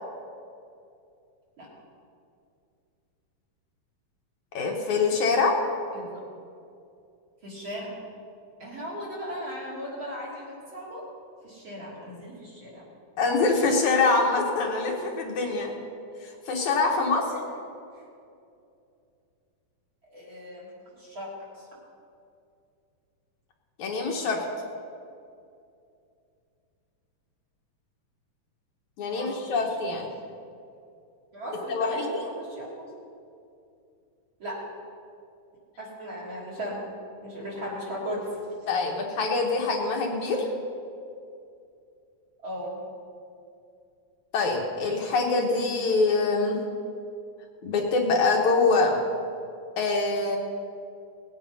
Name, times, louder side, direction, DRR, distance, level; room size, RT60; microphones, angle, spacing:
voice 1, 4.5-5.6 13.2-15.7 16.2-17.2 23.8-24.4 29.0-30.1 31.7-32.2 38.7-40.5 44.3-46.6 47.6-49.0 49.8-50.4, left 3 dB, 65° left, 0 dB, 2.5 m, -24 dB
voice 2, 7.4-8.0 8.6-11.0 11.4-12.8 16.9-17.4 20.1-20.7 21.0-21.3 21.6-21.7 29.1-29.6 31.3-32.9 34.4-34.6 35.8-36.8 37.2-38.3 42.4-42.8, equal, 35° right, -5 dB, 3.7 m, -37 dB
19.0 x 8.9 x 5.4 m, 2.5 s
omnidirectional pair, 3.8 m